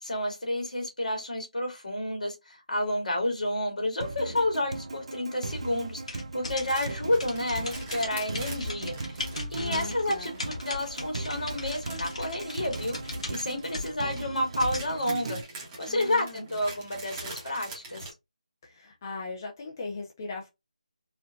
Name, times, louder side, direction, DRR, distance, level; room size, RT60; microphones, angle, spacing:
voice 1, 0.0-9.2 9.5-15.4 15.8-18.1, left 1 dB, 75° left, 2.3 m, -30 dB
sound 1, 4.0-15.4, right 3 dB, 50° right, 0.5 m, -38 dB
sound 2, 6.1-14.9, left 2 dB, 55° left, 1.7 m, -38 dB
sound 3, 6.6-18.1, right 2 dB, 15° right, 1.0 m, -44 dB
voice 2, 9.5-10.4 15.9-16.4 18.6-20.5, left 3 dB, 25° left, 0.6 m, -39 dB
4.3 x 2.7 x 2.4 m
figure-of-eight pair, 170°, 4 cm